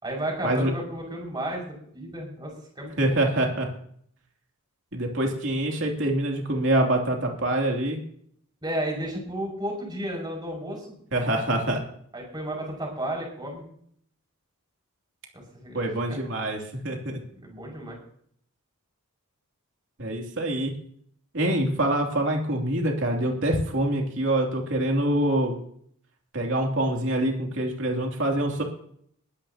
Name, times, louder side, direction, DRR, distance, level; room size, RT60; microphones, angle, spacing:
voice 1, 0.0-3.2 8.6-11.0 12.1-13.6 15.3-16.2 17.4-18.0, right 1 dB, 20° right, -1 dB, 5.7 m, -33 dB
voice 2, 3.0-3.7 4.9-8.0 11.1-11.8 15.7-17.2 20.0-20.7 21.3-25.6 26.3-28.6, right 1 dB, 55° right, 1 dB, 2.9 m, -25 dB
21.5 x 13.0 x 2.9 m, 0.63 s
head